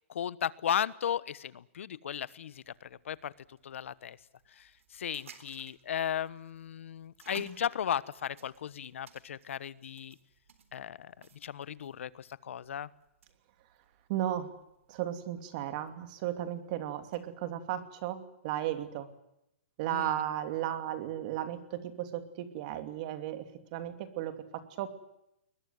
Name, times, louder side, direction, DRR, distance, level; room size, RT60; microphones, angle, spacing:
voice 1, 0.1-4.2 4.5-10.1 10.7-11.1 11.4-12.9 19.9-20.1, left 9 dB, 75° left, 19 dB, 1.1 m, -36 dB
sound 1, 2.5-17.4, right 6 dB, 85° right, 3.8 m, -58 dB
voice 2, 14.1-14.5 14.9-19.1 19.8-24.9, right 12 dB, 35° right, 10 dB, 2.8 m, -35 dB
22.0 x 20.5 x 9.5 m, 0.83 s
hypercardioid pair, 165°, 7 cm